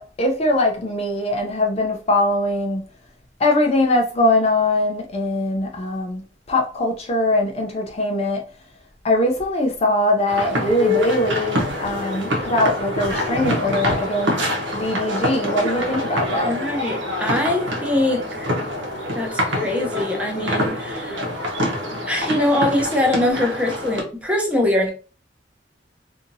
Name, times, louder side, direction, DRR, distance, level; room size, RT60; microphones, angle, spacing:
voice 1, 0.0-2.8 3.4-6.2 6.5-8.4 9.0-14.4 14.7-16.5, left 1 dB, 35° left, 0.4 m, -21 dB
sound 1, 10.3-24.0, left 1 dB, 85° right, 0.9 m, -25 dB
voice 2, 16.4-18.5 19.1-21.2 22.1-24.9, left 1 dB, 5° right, 0.6 m, -22 dB
2.7 x 2.6 x 2.6 m
head